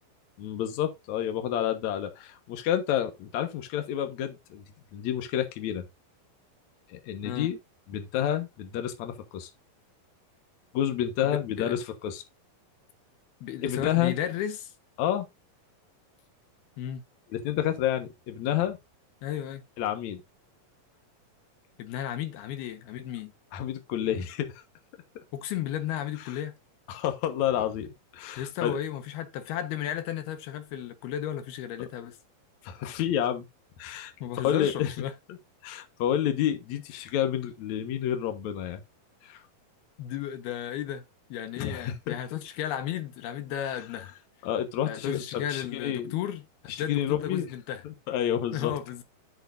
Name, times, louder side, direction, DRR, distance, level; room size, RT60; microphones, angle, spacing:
voice 1, 0.4-4.6 4.9-5.9 6.9-7.6 7.9-9.5 10.7-12.2 13.6-14.1 15.0-15.3 17.3-18.8 19.8-20.2 23.5-24.6 26.9-27.9 28.1-28.8 31.8-31.9 32.6-33.5 33.8-34.1 34.4-34.9 35.6-38.8 39.2-39.4 41.6-42.1 44.4-46.2 46.7-47.5 47.8-48.7, left 10 dB, 60° left, 2.2 m, -29 dB
voice 2, 11.2-11.8 13.4-14.7 16.8-17.0 19.2-19.6 21.8-23.3 25.3-26.6 28.4-32.2 34.2-35.1 37.0-37.1 40.0-41.0 41.3-44.1 44.9-47.8 48.5-49.0, left 10 dB, 90° left, 3.2 m, -34 dB
10.5 x 7.8 x 2.6 m
omnidirectional pair, 4.4 m